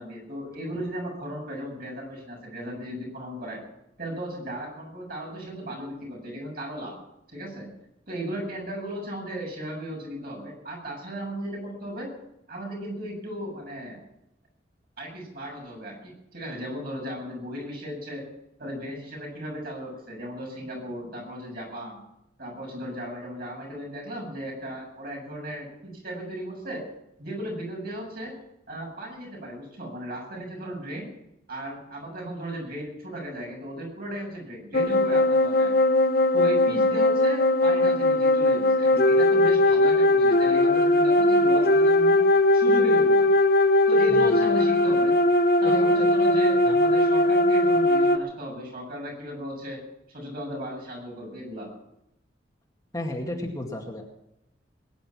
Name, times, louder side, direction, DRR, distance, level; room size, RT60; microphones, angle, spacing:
voice 1, 0.0-3.6 4.0-7.0 7.3-7.7 8.1-12.1 12.5-14.0 15.0-18.3 18.6-22.0 22.4-26.9 27.2-28.4 28.7-31.1 31.5-35.7 36.3-42.2 42.5-43.3 43.9-45.2 45.6-49.8 50.1-51.7, equal, 55° right, -1 dB, 7.8 m, -36 dB
sound 1, 34.7-48.2, left 1 dB, 55° left, 0.9 m, -20 dB
voice 2, 45.6-46.1 46.7-46.8 52.9-54.0, left 1 dB, 20° left, 0 dB, 2.1 m, -33 dB
21.5 x 10.5 x 6.0 m, 0.85 s
head